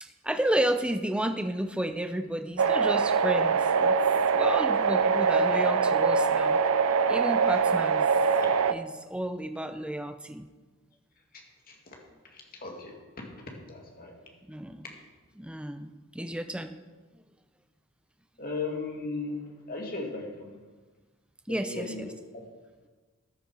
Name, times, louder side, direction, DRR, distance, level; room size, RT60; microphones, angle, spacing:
voice 1, 0.0-4.0 4.3-6.6 7.1-8.1 8.7-10.5 14.5-14.8 15.4-16.8 21.5-22.1, right 1 dB, 5° right, 8 dB, 0.5 m, -32 dB
sound 1, 2.6-8.7, right 5 dB, 75° right, 0.5 m, -23 dB
voice 2, 11.7-12.0 12.3-13.0 13.4-14.1 18.4-20.6 21.5-22.4, left 3 dB, 45° left, 0 dB, 2.4 m, -37 dB
13.5 x 10.5 x 4.9 m, 1.3 s
head